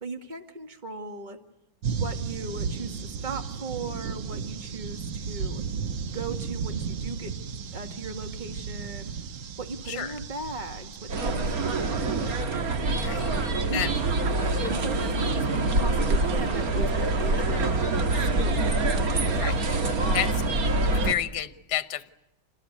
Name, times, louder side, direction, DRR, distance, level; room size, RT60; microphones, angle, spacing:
voice 1, 0.0-1.4 1.9-5.6 6.1-7.3 7.7-9.1 9.6-12.3 13.2-13.9 14.3-17.8 18.1-18.6 18.9-19.5 20.0-20.3 20.8-20.9, right 2 dB, 25° right, 7 dB, 2.0 m, -38 dB
sound 1, 1.8-12.4, right 6 dB, 70° right, 1.8 m, -34 dB
sound 2, 11.1-21.1, right 2 dB, 50° right, 1.9 m, -25 dB
voice 2, 19.4-19.8 20.1-20.3 20.9-22.1, left 11 dB, 60° left, 13 dB, 1.6 m, -30 dB
28.0 x 20.0 x 9.6 m, 0.97 s
omnidirectional pair, 2.2 m